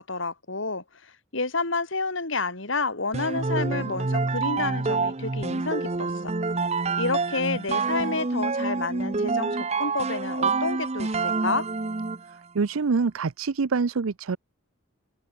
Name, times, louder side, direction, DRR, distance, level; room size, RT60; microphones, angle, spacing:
voice 1, 0.0-6.3 7.0-11.7, left 3 dB, 60° left, 2.8 m, -30 dB
sound 1, 3.1-12.3, right 3 dB, 30° right, 0.7 m, -27 dB
voice 2, 12.5-14.4, right 4 dB, 80° right, 0.6 m, -25 dB
open air
head